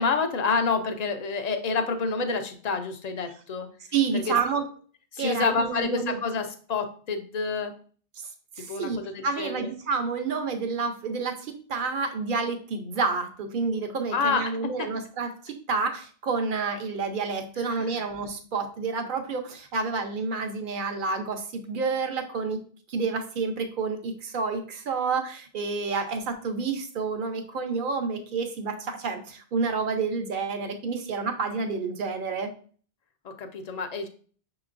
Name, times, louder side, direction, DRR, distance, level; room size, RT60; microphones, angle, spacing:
voice 1, 0.0-3.7 4.1-4.3 5.1-7.7 8.7-9.7 14.1-14.9 17.6-18.0 33.2-34.1, left 4 dB, 50° left, 7 dB, 0.6 m, -28 dB
voice 2, 3.9-4.7 5.2-6.2 8.6-22.6 22.9-32.5, right 4 dB, 55° right, 5 dB, 0.8 m, -29 dB
6.1 x 3.0 x 2.5 m, 0.44 s
omnidirectional pair, 1.1 m